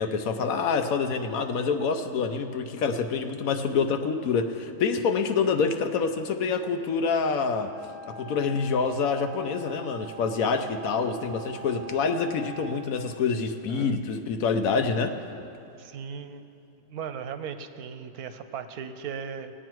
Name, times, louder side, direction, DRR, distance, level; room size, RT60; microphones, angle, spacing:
voice 1, 0.0-7.7 8.1-15.2, left 5 dB, 70° left, 7 dB, 1.1 m, -26 dB
Wind instrument woodwind instrument, 7.5-12.8, right 5 dB, 35° right, 2.4 m, -44 dB
voice 2, 15.8-16.4 16.9-19.5, right 7 dB, 80° right, 9 dB, 1.2 m, -37 dB
18.5 x 8.8 x 4.6 m, 2.7 s
omnidirectional pair, 1.6 m